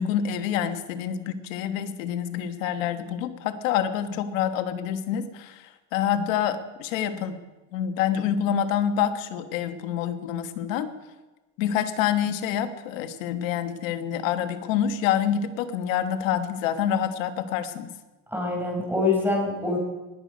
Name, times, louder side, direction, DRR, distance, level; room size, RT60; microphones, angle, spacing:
voice 1, 0.0-7.4 7.7-10.9 11.6-17.9, left 9 dB, 90° left, 9 dB, 1.3 m, -27 dB
voice 2, 18.3-19.8, left 3 dB, 5° right, 0 dB, 5.0 m, -25 dB
20.0 x 8.1 x 5.2 m, 1.1 s
supercardioid pair, 115°, 38 cm